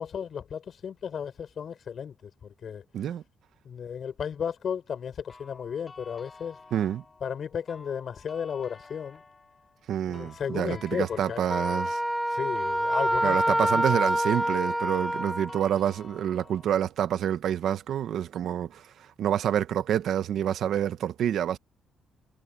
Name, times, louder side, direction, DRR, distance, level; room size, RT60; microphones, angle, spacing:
voice 1, 0.0-2.8 3.6-6.6 7.2-9.2 10.1-11.4 12.3-14.0, left 7 dB, 55° left, 5.6 m, -34 dB
sound 1, 5.3-16.7, left 3 dB, 30° left, 4.9 m, -50 dB
voice 2, 6.7-7.0 9.9-12.0 13.2-21.6, right 10 dB, 70° right, 1.1 m, -28 dB
Wind instrument woodwind instrument, 11.5-15.6, right 1 dB, 5° right, 0.4 m, -26 dB
cardioid pair, 90°, 0 cm